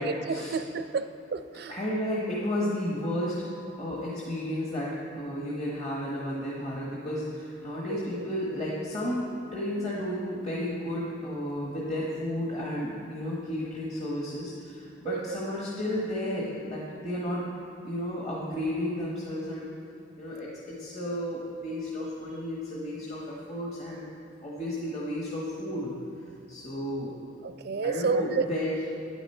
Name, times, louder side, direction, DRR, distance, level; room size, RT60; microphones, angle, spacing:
voice 1, 0.0-1.8 7.9-8.3 15.0-15.4 27.4-28.5, right 5 dB, 55° right, 10 dB, 0.4 m, -30 dB
voice 2, 1.7-3.4 3.8-9.2 9.5-17.5 17.8-19.7 20.2-24.1 24.4-25.9 26.5-27.2 27.8-28.8, left 1 dB, 35° left, -5 dB, 1.3 m, -32 dB
9.8 x 9.1 x 4.4 m, 2.7 s
head